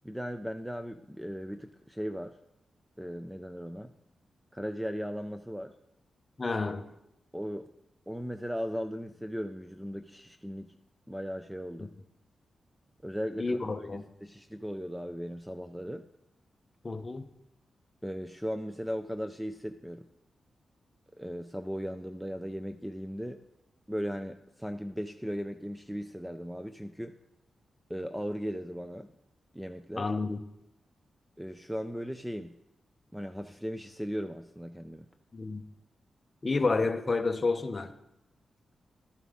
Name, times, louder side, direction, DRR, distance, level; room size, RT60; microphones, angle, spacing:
voice 1, 0.0-2.4 3.0-3.9 4.5-5.7 7.3-7.7 8.1-10.7 11.1-12.0 13.0-16.1 18.0-20.1 21.2-23.4 23.9-27.1 27.9-29.1 29.5-30.1 31.4-32.5 33.1-35.1, equal, 5° right, 0.3 m, -37 dB
voice 2, 6.4-6.8 13.4-14.0 16.8-17.2 30.0-30.4 35.3-35.6 36.4-37.9, left 3 dB, 25° left, 0.7 m, -29 dB
12.5 x 11.0 x 3.6 m
wide cardioid pair, 170°, 0 cm